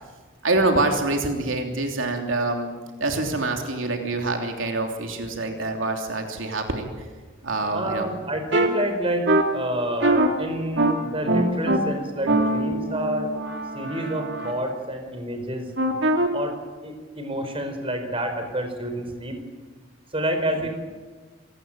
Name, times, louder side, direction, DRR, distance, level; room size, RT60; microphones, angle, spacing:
voice 1, 0.4-2.7 3.0-6.9 7.4-8.1, right 2 dB, 85° right, 3 dB, 3.1 m, -25 dB
voice 2, 7.7-13.3 13.7-15.7 16.3-16.6 16.8-19.4 20.1-20.7, right 1 dB, 30° right, 6 dB, 4.3 m, -28 dB
sound 1, 8.5-8.7 9.3-9.4 10.0-10.3 10.8-10.9 11.3-11.8 12.3-14.5 15.8-16.3, right 1 dB, 60° right, 2.9 m, -22 dB
27.0 x 18.0 x 8.8 m, 1.4 s
head